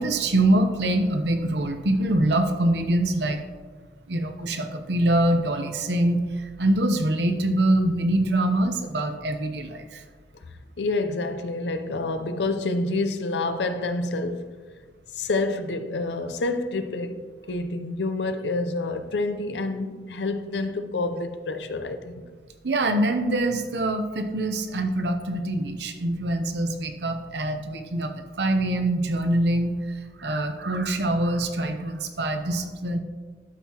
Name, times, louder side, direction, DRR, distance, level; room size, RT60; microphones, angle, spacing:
voice 1, 0.0-3.4 4.1-10.0 22.6-33.0, right 1 dB, 65° right, 0.8 m, -24 dB
voice 2, 10.8-14.5 15.1-22.2, left 2 dB, 70° left, 0.6 m, -28 dB
12.0 x 5.6 x 2.9 m
head